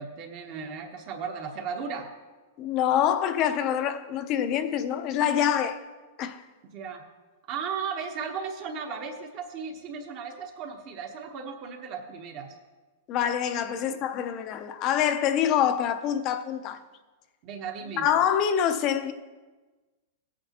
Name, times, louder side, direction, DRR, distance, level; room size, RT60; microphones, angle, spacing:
voice 1, 0.0-2.1 6.6-7.0 7.5-12.6 13.8-14.0 17.4-18.1, right 6 dB, 40° right, 1.0 m, -36 dB
voice 2, 2.6-5.8 6.2-6.4 13.1-16.8 18.0-19.1, left 9 dB, 35° left, 0.6 m, -25 dB
16.0 x 8.6 x 2.9 m
supercardioid pair, 155°, 0 cm